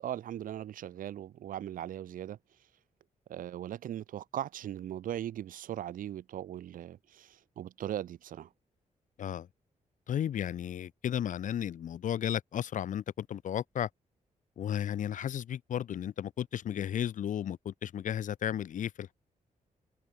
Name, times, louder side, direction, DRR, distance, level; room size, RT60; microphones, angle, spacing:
voice 1, 0.0-2.4 3.3-8.5, right 11 dB, 85° right, 0.7 m, -39 dB
voice 2, 10.1-13.9 14.6-19.1, left 10 dB, 65° left, 0.8 m, -34 dB
wide cardioid pair, 125°, 14 cm